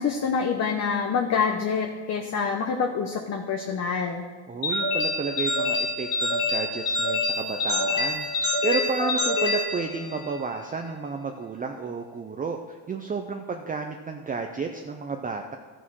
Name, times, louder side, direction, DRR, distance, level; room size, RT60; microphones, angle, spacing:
voice 1, 0.0-4.2, left 6 dB, 35° left, 3 dB, 0.9 m, -26 dB
voice 2, 4.5-15.6, right 4 dB, 20° right, 4 dB, 0.5 m, -32 dB
sound 1, 4.6-10.4, left 2 dB, 90° left, 2.2 m, -26 dB
12.0 x 6.0 x 6.2 m, 1.5 s
supercardioid pair, 105°, 47 cm